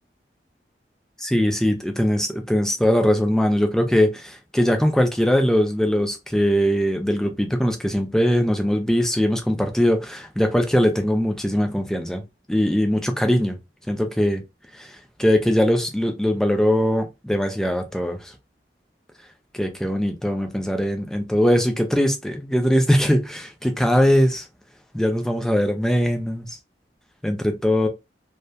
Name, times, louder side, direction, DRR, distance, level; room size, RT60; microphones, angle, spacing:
voice 1, 1.2-12.2 12.5-13.6 13.9-14.4 14.7-18.3 19.5-24.5 24.9-26.6 27.2-27.9, equal, 5° left, 0.4 m, -21 dB
2.8 x 2.1 x 2.2 m
head